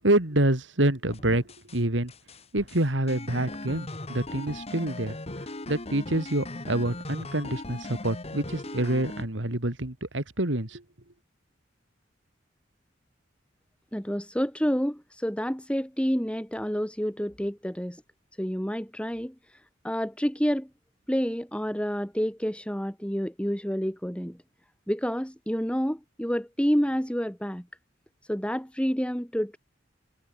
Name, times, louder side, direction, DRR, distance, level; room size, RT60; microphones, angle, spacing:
voice 1, 0.0-2.1 2.5-5.2 5.7-10.8, right 1 dB, 70° right, 2.7 m, -27 dB
sound 1, 1.1-1.8 2.1-9.3, left 2 dB, 35° left, 2.1 m, -39 dB
voice 2, 13.9-18.0 18.4-20.7 21.1-24.4 24.9-27.7 28.3-29.6, equal, 5° left, 4.5 m, -29 dB
head